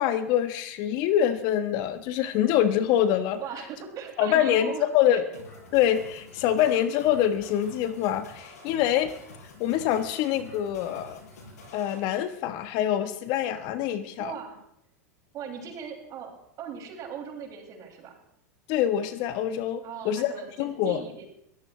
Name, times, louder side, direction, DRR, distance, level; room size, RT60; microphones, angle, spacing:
voice 1, 0.0-3.4 4.2-5.2 5.7-9.1 9.6-11.2 11.7-14.3 18.7-20.3 20.6-21.0, left 11 dB, 55° left, 10 dB, 1.4 m, -25 dB
voice 2, 3.4-5.4 14.2-14.6 15.3-16.3 16.6-18.2 19.8-21.2, right 7 dB, 40° right, 0 dB, 6.8 m, -39 dB
sound 1, 5.3-12.0, left 2 dB, 80° left, 7.8 m, -48 dB
22.0 x 17.0 x 3.4 m, 0.73 s
hypercardioid pair, 100°, 9 cm